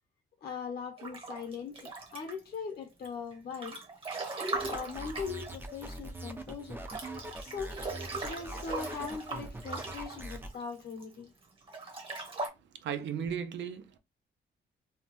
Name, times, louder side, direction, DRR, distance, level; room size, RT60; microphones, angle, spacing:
voice 1, 0.4-3.8 4.7-6.8 7.4-7.8 8.2-11.3, left 5 dB, 55° left, 0.7 m, -40 dB
Breathing / Bathtub (filling or washing) / Splash splatter, 1.0-2.5 3.0-6.2 6.5-6.6 6.8-11.0 11.6-12.5, right 3 dB, 30° right, 0.8 m, -39 dB
sound 1, 4.5-10.5, right 1 dB, 10° right, 0.4 m, -43 dB
voice 2, 12.8-14.0, right 8 dB, 80° right, 0.5 m, -35 dB
2.7 x 2.2 x 3.0 m
wide cardioid pair, 160°, 19 cm